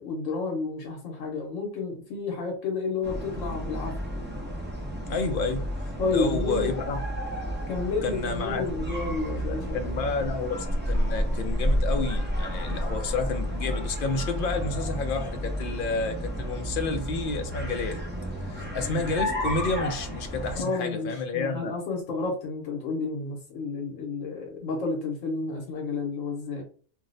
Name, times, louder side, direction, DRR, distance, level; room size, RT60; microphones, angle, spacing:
voice 1, 0.0-4.0 6.0-6.7 7.7-9.9 20.5-26.6, left 3 dB, 80° left, 1.1 m, -31 dB
sound 1, 3.0-20.6, equal, 20° right, 0.3 m, -31 dB
voice 2, 5.1-5.6 6.1-7.0 8.0-8.6 9.5-18.0 18.4-21.7, left 4 dB, 60° left, 0.6 m, -30 dB
2.7 x 2.0 x 3.8 m
omnidirectional pair, 1.3 m